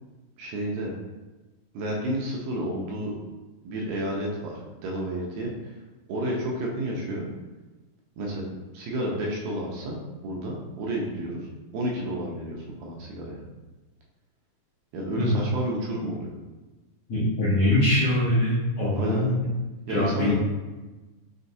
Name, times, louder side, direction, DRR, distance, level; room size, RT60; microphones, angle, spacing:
voice 1, 0.4-0.9 1.7-3.1 3.6-5.7 6.1-7.3 8.2-8.5 8.7-11.5 11.7-13.4 14.9-16.3 18.9-19.4 19.9-20.3, right 1 dB, 80° right, -2 dB, 2.2 m, -31 dB
voice 2, 15.2-15.5 17.1-19.5 19.9-20.3, left 1 dB, 80° left, -9 dB, 1.5 m, -23 dB
6.4 x 2.2 x 2.6 m, 1.2 s
omnidirectional pair, 4.5 m